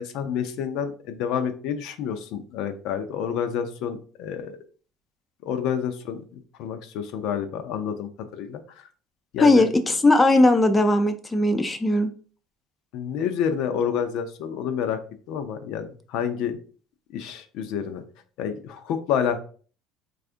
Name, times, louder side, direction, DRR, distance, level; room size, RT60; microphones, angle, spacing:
voice 1, 0.0-4.5 5.4-8.6 9.3-9.7 12.9-15.0 15.3-16.6 17.1-18.0 18.4-19.4, left 8 dB, 70° left, 9 dB, 0.5 m, -29 dB
voice 2, 9.4-12.1, left 2 dB, 15° left, 8 dB, 0.4 m, -18 dB
4.7 x 2.4 x 2.5 m, 0.41 s
cardioid pair, 115°, 0 cm